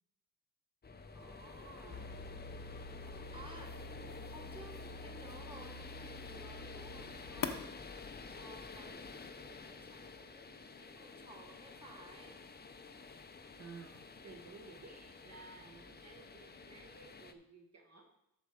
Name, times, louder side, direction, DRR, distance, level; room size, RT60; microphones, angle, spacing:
sound 1, 0.8-17.3, left 4 dB, 30° left, 0.6 m, -50 dB
voice 1, 0.9-2.4 3.0-3.8 4.3-4.7 5.0-7.8 8.1-9.0 9.4-12.4, right 1 dB, 15° right, 1 dB, 1.5 m, -56 dB
voice 2, 1.6-2.2 3.7-4.4 13.6-18.0, right 4 dB, 45° right, 0 dB, 1.6 m, -55 dB
sound 2, 1.9-8.9, left 4 dB, 65° left, 0.9 m, -47 dB
13.0 x 4.7 x 4.8 m, 0.84 s
wide cardioid pair, 140°, 36 cm